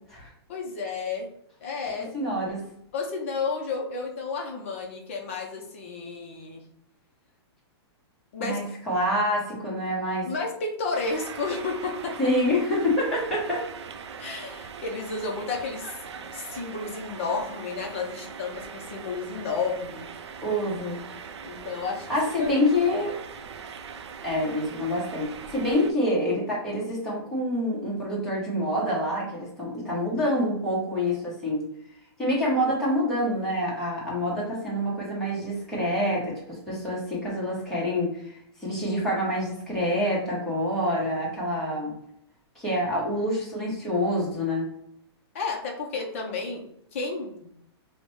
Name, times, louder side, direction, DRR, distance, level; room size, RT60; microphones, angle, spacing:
voice 1, 0.5-1.3 1.6-2.1 2.9-6.6 8.3-8.7 10.2-12.2 14.2-16.0 16.3-20.1 21.4-22.1 22.4-22.5 45.3-46.6 46.9-47.5, left 4 dB, 30° left, 1 dB, 0.5 m, -32 dB
voice 2, 1.9-2.6 8.4-10.3 12.2-13.7 20.4-21.0 22.1-23.2 24.2-31.7 32.2-41.9 42.5-44.7, left 1 dB, 5° left, -7 dB, 0.8 m, -27 dB
sound 1, 10.9-25.9, right 6 dB, 80° right, 0.5 m, -41 dB
4.8 x 2.0 x 3.1 m, 0.72 s
hypercardioid pair, 180°, 14 cm